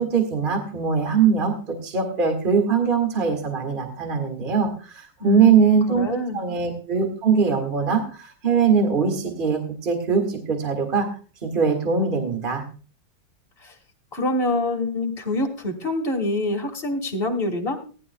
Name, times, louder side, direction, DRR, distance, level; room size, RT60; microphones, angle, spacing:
voice 1, 0.0-11.1 11.4-12.6, right 6 dB, 30° right, 4 dB, 1.9 m, -21 dB
voice 2, 5.2-6.4 13.6-13.7 14.1-17.8, left 2 dB, 30° left, 2 dB, 1.9 m, -26 dB
18.0 x 11.0 x 2.2 m, 0.37 s
omnidirectional pair, 2.0 m